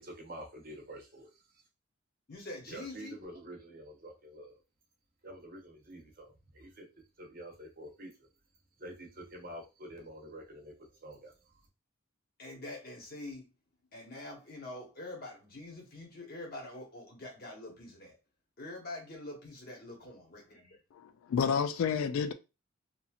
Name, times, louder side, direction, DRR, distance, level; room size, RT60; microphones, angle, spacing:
voice 1, 0.0-1.4 2.7-4.6 5.2-6.9 7.2-8.3 8.8-11.5, right 1 dB, 45° right, 0.8 m, -48 dB
voice 2, 2.3-3.2 12.4-13.5 13.9-18.1 18.6-20.8, left 2 dB, 45° left, 1.0 m, -45 dB
voice 3, 21.0-22.3, left 6 dB, 75° left, 0.3 m, -30 dB
2.8 x 2.7 x 2.3 m
head